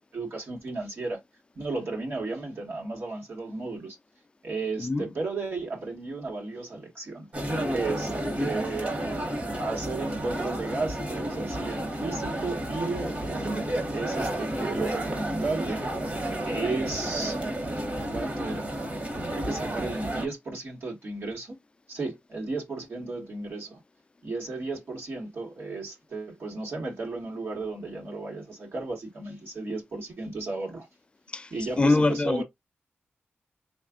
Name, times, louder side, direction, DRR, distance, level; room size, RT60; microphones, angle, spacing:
voice 1, 0.1-1.2 1.5-4.0 4.4-7.3 7.7-8.9 9.5-13.5 13.9-15.8 16.4-17.4 18.1-18.7 19.3-21.5 21.9-23.8 24.2-30.9 31.5-32.4, right 3 dB, 70° right, 1.3 m, -34 dB
sound 1, 7.3-20.3, right 1 dB, 40° right, 1.2 m, -31 dB
voice 2, 31.8-32.4, left 3 dB, 25° left, 0.4 m, -23 dB
3.4 x 2.4 x 3.5 m
wide cardioid pair, 85°, 4 cm